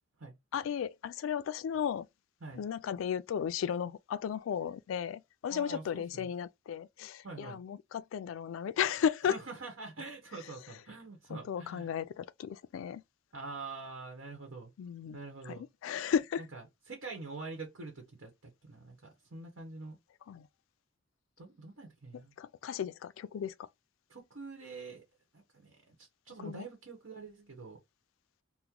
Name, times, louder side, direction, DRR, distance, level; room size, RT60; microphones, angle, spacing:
voice 1, 0.5-2.1 2.5-9.4 11.3-13.0 14.8-15.2 15.5-16.4 20.3-20.5 22.4-23.5 26.4-26.7, left 8 dB, 75° left, 0.3 m, -35 dB
voice 2, 5.5-6.3 7.2-7.6 9.2-11.9 13.3-14.7 15.1-15.6 16.4-20.0 21.4-22.3 24.1-25.0 25.3-25.7 26.0-27.8, right 3 dB, 85° right, 1.0 m, -45 dB
2.9 x 2.1 x 3.6 m
head